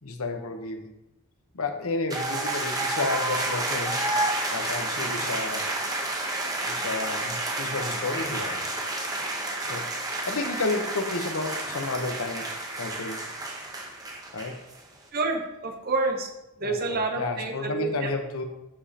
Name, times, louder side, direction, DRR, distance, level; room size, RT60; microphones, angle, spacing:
voice 1, 0.0-0.9 1.5-4.1 4.5-5.7 6.6-8.7 9.6-13.3 14.3-14.7 16.6-18.4, left 3 dB, 80° left, 5 dB, 1.0 m, -32 dB
sound 1, 2.1-14.8, right 2 dB, 15° right, 0.8 m, -30 dB
voice 2, 15.1-16.3 16.6-18.1, right 3 dB, 45° right, 4 dB, 0.9 m, -28 dB
12.0 x 5.1 x 2.9 m, 0.92 s
head